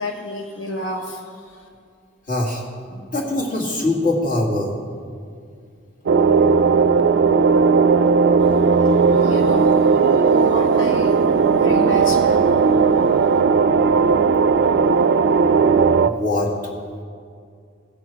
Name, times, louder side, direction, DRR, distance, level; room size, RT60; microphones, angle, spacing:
voice 1, 0.0-1.7 8.4-13.4, left 1 dB, 75° left, 2 dB, 1.2 m, -33 dB
voice 2, 2.3-2.6 2.9-4.7 16.0-16.5, left 2 dB, 45° left, -3 dB, 2.0 m, -22 dB
sound 1, 6.1-16.1, right 5 dB, 60° right, 0.3 m, -16 dB
16.5 x 6.2 x 4.6 m, 2.3 s
head